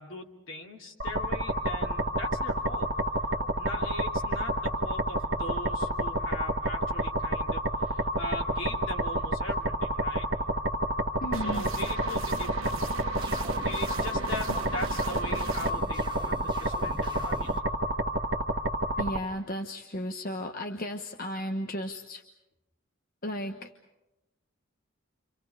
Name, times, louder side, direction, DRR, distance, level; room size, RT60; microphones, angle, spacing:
voice 1, 0.0-2.9 3.6-10.3 11.3-12.7 13.6-17.7, left 2 dB, 75° left, 1 dB, 3.1 m, -41 dB
sound 1, 1.0-19.2, right 1 dB, 60° right, 1.5 m, -29 dB
voice 2, 11.2-11.7 19.0-22.2 23.2-23.7, equal, 45° left, 4 dB, 1.2 m, -34 dB
sound 2, 11.3-15.7, right 4 dB, 85° right, 1.3 m, -40 dB
sound 3, 13.2-17.6, right 2 dB, 25° right, 1.2 m, -44 dB
29.5 x 26.5 x 5.0 m, 0.95 s
head